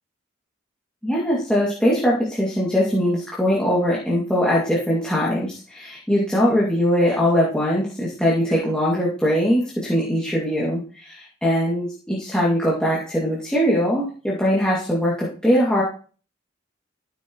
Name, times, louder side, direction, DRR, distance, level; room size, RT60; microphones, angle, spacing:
voice 1, 1.0-15.8, equal, 5° left, -7 dB, 2.4 m, -21 dB
14.0 x 7.9 x 3.1 m, 0.40 s
head